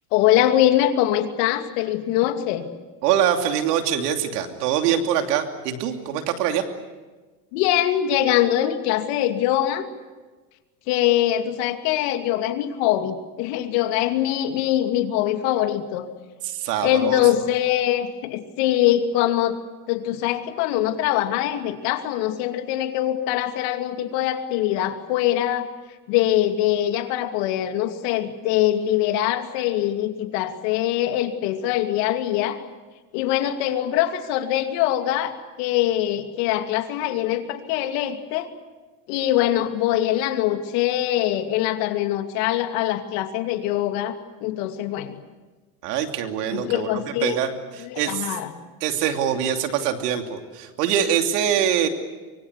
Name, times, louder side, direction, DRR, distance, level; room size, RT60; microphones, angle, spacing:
voice 1, 0.1-2.7 7.5-9.9 10.9-16.1 16.8-19.6 19.9-25.7 26.1-32.6 33.1-38.5 39.1-44.1 44.4-45.2 46.5-47.4 47.8-48.5, left 12 dB, 70° left, 6 dB, 2.7 m, -23 dB
voice 2, 3.0-6.6 16.4-17.2 45.8-48.3 48.8-51.9, right 9 dB, 85° right, 5 dB, 3.0 m, -24 dB
24.5 x 24.0 x 8.2 m, 1.3 s
supercardioid pair, 110°, 46 cm